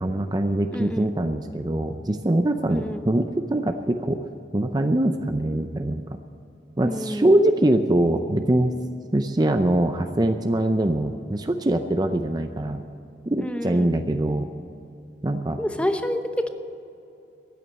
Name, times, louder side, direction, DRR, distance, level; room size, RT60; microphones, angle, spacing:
voice 1, 0.0-4.2 4.5-6.0 6.8-8.7 9.1-12.8 13.3-14.5 15.2-15.6, right 1 dB, 25° right, 7 dB, 0.6 m, -23 dB
voice 2, 0.7-1.1 2.7-3.0 6.8-7.4 13.4-13.9 15.6-16.5, left 1 dB, 5° left, 7 dB, 0.8 m, -28 dB
14.0 x 9.9 x 9.2 m, 2.8 s
head